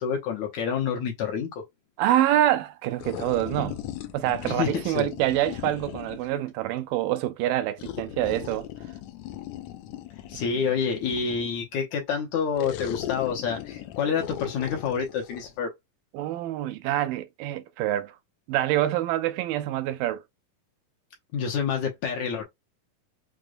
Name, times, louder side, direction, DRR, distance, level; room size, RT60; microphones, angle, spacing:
voice 1, 0.0-1.6 4.5-5.1 10.3-15.7 21.3-22.4, left 6 dB, 70° left, 1.9 m, -28 dB
voice 2, 2.0-3.8 4.1-8.7 16.1-18.1 18.5-20.2, right 13 dB, 90° right, 2.3 m, -26 dB
sound 1, 3.0-6.4 7.8-11.6 12.6-15.5, left 12 dB, 90° left, 1.6 m, -38 dB
6.2 x 2.2 x 2.4 m
omnidirectional pair, 3.8 m